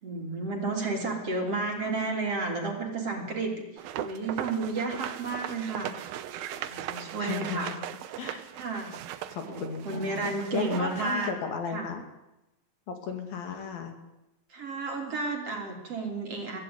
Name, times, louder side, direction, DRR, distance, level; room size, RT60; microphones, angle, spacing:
voice 1, 0.0-6.2 6.5-7.7 8.5-8.9 9.2-11.3 11.7-11.9 14.5-16.6, right 3 dB, 40° right, 2 dB, 4.0 m, -32 dB
sound 1, 3.8-11.3, right 11 dB, 75° right, 2.8 m, -38 dB
voice 2, 7.2-7.8 8.2-8.4 9.3-12.0 12.9-13.9, left 6 dB, 65° left, 6 dB, 4.3 m, -35 dB
23.5 x 16.5 x 9.6 m, 0.94 s
omnidirectional pair, 4.6 m